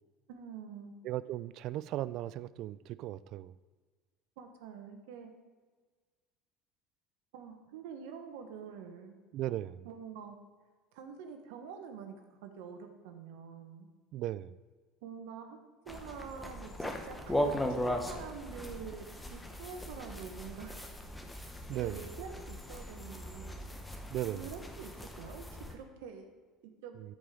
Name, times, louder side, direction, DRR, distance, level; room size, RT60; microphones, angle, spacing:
voice 1, 0.3-0.9 4.4-5.3 7.3-9.2 9.8-10.4 10.9-13.9 15.0-15.6 15.8-20.8 21.7-23.6 24.2-26.3 26.6-27.0, right 6 dB, 85° right, 5 dB, 1.2 m, -46 dB
voice 2, 1.0-3.5 9.3-9.9 14.1-14.6 21.7-22.0 24.1-24.5, right 14 dB, 60° right, 17 dB, 0.3 m, -37 dB
sound 1, 15.9-25.7, equal, 10° left, 1.2 m, -38 dB
13.0 x 5.0 x 3.8 m, 1.5 s
supercardioid pair, 100°, 0 cm